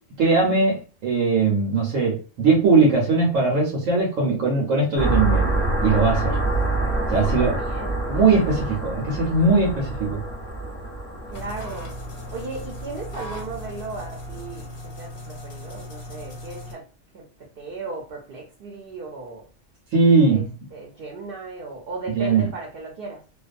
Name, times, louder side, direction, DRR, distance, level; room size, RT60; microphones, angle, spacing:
voice 1, 0.2-5.4 5.8-6.4 7.1-7.6 8.1-10.2 19.9-20.5 22.1-22.5, right 3 dB, 85° right, -2 dB, 1.1 m, -20 dB
sound 1, 5.0-14.5, right 2 dB, 10° left, 0.8 m, -27 dB
voice 2, 7.4-8.0 11.3-11.9 12.3-14.7 15.0-16.8 17.1-17.2 17.6-19.4 20.3-20.4 20.7-23.2, right 3 dB, 55° right, -1 dB, 0.7 m, -36 dB
sound 2, 11.3-16.7, left 1 dB, 50° left, 0.8 m, -38 dB
2.5 x 2.2 x 2.4 m, 0.36 s
omnidirectional pair, 1.3 m